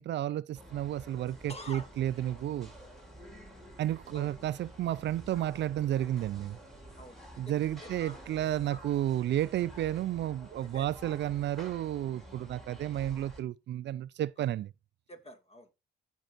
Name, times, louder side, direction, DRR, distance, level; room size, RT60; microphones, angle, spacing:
voice 1, 0.0-2.7 3.8-6.6 7.4-14.7, right 12 dB, 65° right, 0.4 m, -32 dB
sound 1, 0.6-13.4, right 1 dB, ahead, 4.0 m, -50 dB
voice 2, 1.5-1.9 4.1-4.3 7.0-8.2 8.7-8.8 10.6-10.9 15.1-15.7, left 1 dB, 30° left, 2.1 m, -48 dB
15.5 x 5.4 x 2.5 m
cardioid pair, 90°, 20 cm